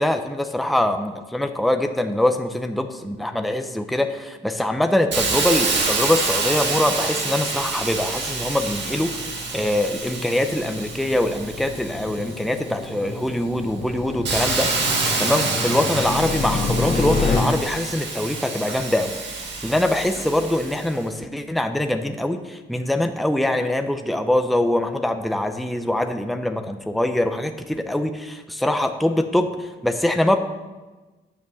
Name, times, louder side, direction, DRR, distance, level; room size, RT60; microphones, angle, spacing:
voice 1, 0.0-30.4, left 1 dB, ahead, 6 dB, 0.7 m, -23 dB
Hiss, 5.1-12.7 13.2-20.9, right 4 dB, 65° right, 2.0 m, -27 dB
sound 1, 7.0-17.4, left 4 dB, 45° left, 2.0 m, -30 dB
9.5 x 5.9 x 7.0 m, 1.2 s
cardioid pair, 90°, 20 cm